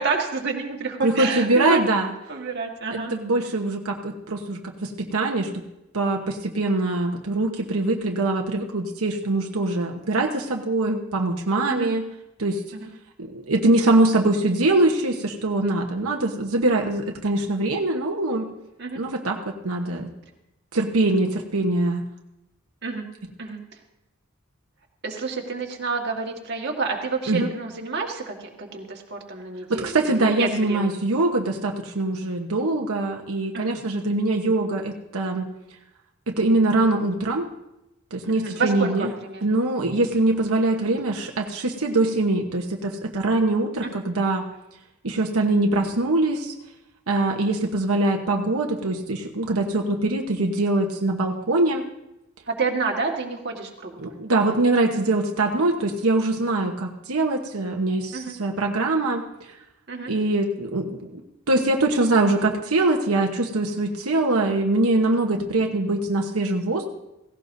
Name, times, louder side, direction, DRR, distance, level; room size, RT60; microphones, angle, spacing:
voice 1, 0.0-1.8 2.3-3.1 11.7-11.9 12.7-12.9 18.8-19.0 22.8-23.0 23.4-23.6 25.0-31.0 33.5-33.8 38.3-39.6 43.8-43.9 52.5-54.1 58.1-58.3 59.9-60.1, right 4 dB, 50° right, 1 dB, 1.7 m, -29 dB
voice 2, 1.0-2.1 2.9-5.5 5.9-12.0 12.4-12.6 13.3-18.4 18.9-19.4 19.6-20.1 20.7-22.0 27.3-27.5 29.7-35.4 36.3-37.5 38.1-39.1 39.4-44.4 45.0-46.5 47.1-51.8 54.0-59.2 60.1-61.1 61.5-66.9, right 2 dB, 85° right, 1 dB, 1.1 m, -23 dB
17.0 x 16.5 x 2.7 m, 0.91 s
head